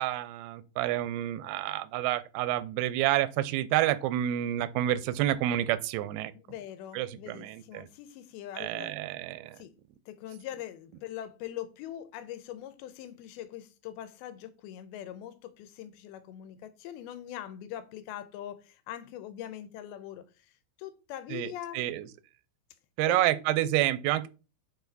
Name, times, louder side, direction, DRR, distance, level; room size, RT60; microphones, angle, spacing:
voice 1, 0.0-6.3 6.9-7.9 8.6-9.6 21.3-22.1 23.0-24.3, right 13 dB, 90° right, 2.5 m, -29 dB
voice 2, 6.5-9.0 9.6-9.7 10.1-20.5 20.8-21.9 23.1-23.2, left 11 dB, 85° left, 2.5 m, -42 dB
7.0 x 4.1 x 4.0 m
omnidirectional pair, 4.5 m